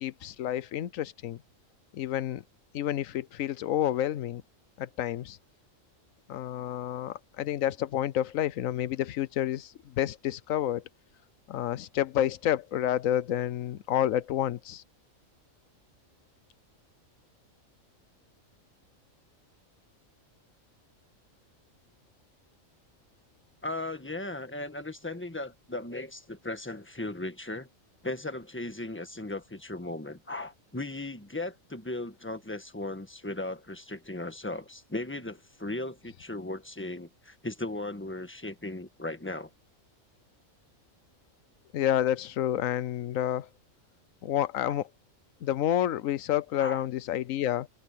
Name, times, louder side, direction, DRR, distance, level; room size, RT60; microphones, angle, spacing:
voice 1, 0.0-1.4 1.9-2.4 2.7-4.4 4.8-5.4 6.3-10.8 11.5-14.8 41.7-43.5 44.2-44.9 45.4-47.7, left 11 dB, 85° left, 1.1 m, -29 dB
voice 2, 23.6-27.7 28.0-39.5 44.6-44.8 46.6-46.8, left 2 dB, 10° left, 1.4 m, -37 dB
omnidirectional pair, 1.4 m